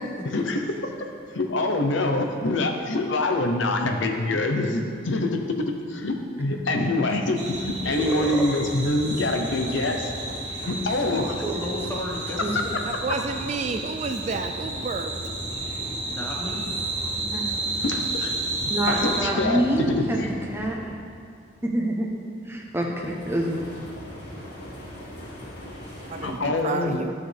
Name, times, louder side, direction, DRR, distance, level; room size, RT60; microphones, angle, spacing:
voice 1, 0.2-1.1 1.3-10.1 10.7-11.4 17.8-18.3 18.9-20.3 26.2-27.0, left 2 dB, 75° left, 4 dB, 0.8 m, -25 dB
voice 2, 4.3-4.8 11.5-12.8 16.1-16.8, left 1 dB, 10° left, -2 dB, 1.1 m, -34 dB
sound 1, 7.4-19.2, right 2 dB, 65° right, 1.7 m, -32 dB
sound 2, 7.5-21.0 22.9-26.4, equal, 60° left, 2.4 m, -39 dB
voice 3, 8.0-8.5 11.4-11.6 12.4-12.5 17.3-17.4 18.7-20.3 20.5-20.8 21.6-22.1 22.5-23.7, right 1 dB, 10° right, -1 dB, 0.8 m, -26 dB
voice 4, 12.9-15.1 26.1-27.1, right 4 dB, 35° right, 6 dB, 0.3 m, -30 dB
11.5 x 6.4 x 3.4 m, 2.2 s
head